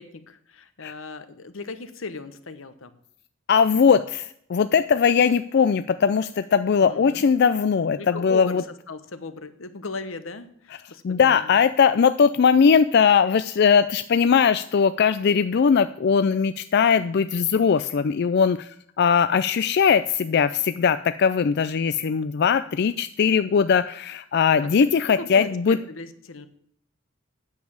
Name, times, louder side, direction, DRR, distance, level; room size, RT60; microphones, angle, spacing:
voice 1, 0.0-2.9 3.9-4.0 6.8-7.2 8.0-11.6 25.1-26.5, left 3 dB, 85° left, 11 dB, 1.0 m, -37 dB
voice 2, 3.5-8.6 11.0-25.8, left 6 dB, 55° left, 12 dB, 0.4 m, -20 dB
9.3 x 7.4 x 7.2 m, 0.66 s
head